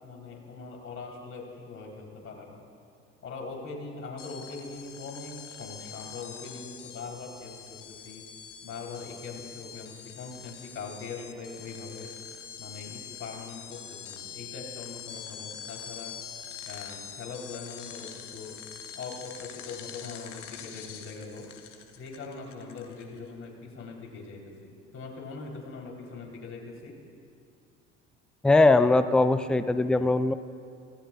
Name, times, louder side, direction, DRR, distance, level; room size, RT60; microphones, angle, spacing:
voice 1, 0.0-2.6 3.2-8.2 8.6-12.1 12.6-16.2 16.6-18.6 18.9-21.5 22.0-27.0, left 4 dB, 40° left, -1 dB, 3.9 m, -41 dB
sound 1, 4.2-23.3, left 8 dB, 85° left, 1.1 m, -44 dB
voice 2, 28.4-30.3, left 2 dB, ahead, 11 dB, 0.5 m, -21 dB
25.5 x 17.5 x 2.5 m, 2.4 s
hypercardioid pair, 65°, 36 cm